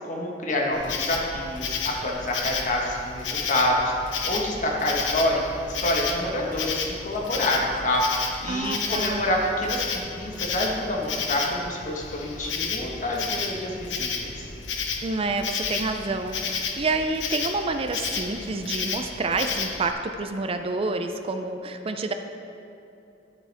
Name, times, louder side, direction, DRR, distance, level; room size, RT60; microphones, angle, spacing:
voice 1, 0.1-3.9 4.2-5.4 5.7-14.4, left 1 dB, 45° left, -1 dB, 1.3 m, -27 dB
Insect, 0.7-19.9, left 5 dB, 80° left, 0.8 m, -32 dB
voice 2, 8.5-9.3 15.0-22.1, right 3 dB, 30° right, 7 dB, 0.4 m, -28 dB
11.5 x 7.2 x 3.4 m, 2.9 s
head